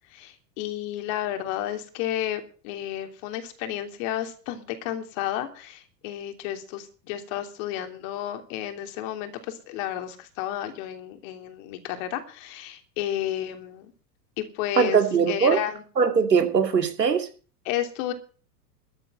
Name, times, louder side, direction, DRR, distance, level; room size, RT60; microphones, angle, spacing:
voice 1, 0.1-13.9 14.4-15.0 15.3-15.8 17.6-18.1, left 12 dB, 50° left, 6 dB, 3.2 m, -32 dB
voice 2, 14.8-15.6 16.0-17.3, right 6 dB, 85° right, 6 dB, 2.8 m, -21 dB
13.5 x 8.7 x 7.9 m, 0.39 s
hypercardioid pair, 95°, 49 cm